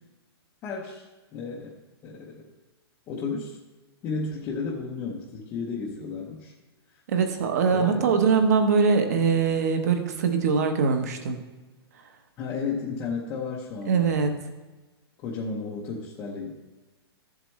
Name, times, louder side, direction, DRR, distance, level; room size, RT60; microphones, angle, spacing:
voice 1, 0.6-1.1 1.3-2.5 3.1-3.6 4.0-6.5 7.7-8.2 12.4-14.2 15.2-16.5, left 4 dB, 15° left, -4 dB, 0.6 m, -33 dB
voice 2, 7.1-11.4 13.9-14.3, right 5 dB, 40° right, 6 dB, 1.0 m, -22 dB
13.5 x 7.6 x 3.1 m, 1.2 s
hypercardioid pair, 180°, 14 cm